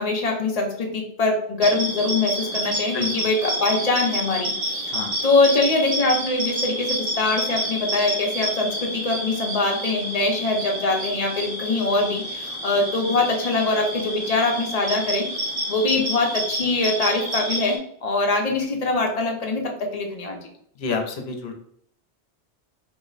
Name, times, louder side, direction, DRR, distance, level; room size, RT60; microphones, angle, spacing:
voice 1, 0.0-4.9 5.2-15.3 15.7-20.4, left 2 dB, 45° left, 1 dB, 0.7 m, -23 dB
sound 1, 1.6-17.8, equal, 85° right, 1.0 m, -29 dB
voice 2, 2.9-3.2 4.9-5.1 20.8-21.5, left 4 dB, 75° left, 4 dB, 0.8 m, -29 dB
2.7 x 2.0 x 3.8 m, 0.66 s
omnidirectional pair, 1.1 m